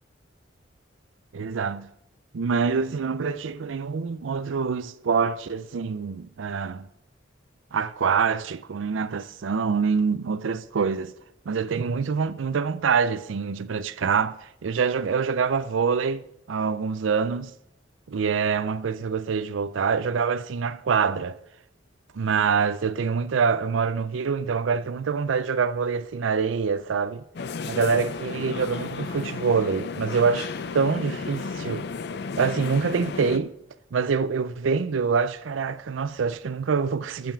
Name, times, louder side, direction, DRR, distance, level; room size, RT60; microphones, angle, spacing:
voice 1, 1.3-1.9 2.3-6.9 7.7-11.1 11.5-17.5 18.1-21.4 22.1-27.2 27.7-31.9 32.4-33.5 33.9-37.3, right 5 dB, 90° right, 0.5 m, -25 dB
sound 1, 27.3-33.4, left 4 dB, 60° left, 0.5 m, -33 dB
6.9 x 5.7 x 7.1 m
head